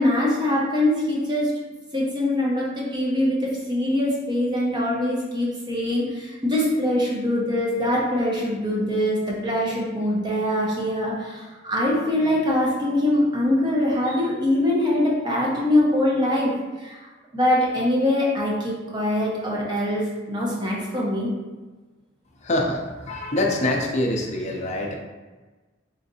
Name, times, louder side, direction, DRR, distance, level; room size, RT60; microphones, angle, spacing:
voice 1, 0.0-1.5 1.9-16.5 16.8-17.0 17.3-21.3, left 1 dB, 25° right, -4 dB, 0.8 m, -23 dB
voice 2, 22.4-24.9, left 1 dB, 35° left, 0 dB, 0.6 m, -25 dB
3.8 x 3.2 x 2.7 m, 1.3 s
head